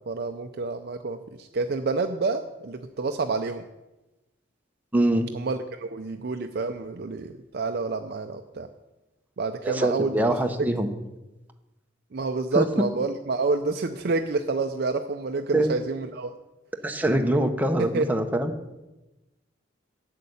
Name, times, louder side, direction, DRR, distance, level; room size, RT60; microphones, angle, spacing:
voice 1, 0.0-3.6 5.3-8.7 9.4-10.1 12.1-16.3 17.8-18.1, right 3 dB, 55° right, 6 dB, 0.5 m, -28 dB
voice 2, 4.9-5.3 9.6-10.9 12.5-12.6 15.5-15.7 16.8-18.5, right 1 dB, 10° right, 4 dB, 0.8 m, -23 dB
8.2 x 6.6 x 8.3 m, 1.0 s
head